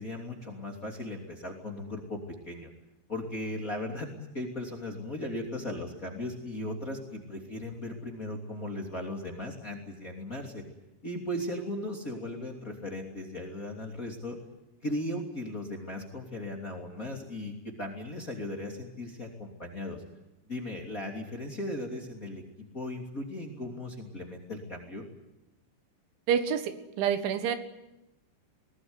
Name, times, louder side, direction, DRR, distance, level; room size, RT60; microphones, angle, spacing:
voice 1, 0.0-2.2 2.4-2.7 3.1-10.6 11.0-14.4 14.8-20.0 20.5-22.4 22.7-25.0, left 1 dB, 20° left, 0 dB, 2.6 m, -37 dB
voice 2, 26.3-27.6, right 8 dB, 80° right, 9 dB, 3.9 m, -28 dB
21.5 x 19.0 x 9.8 m, 0.93 s
omnidirectional pair, 5.4 m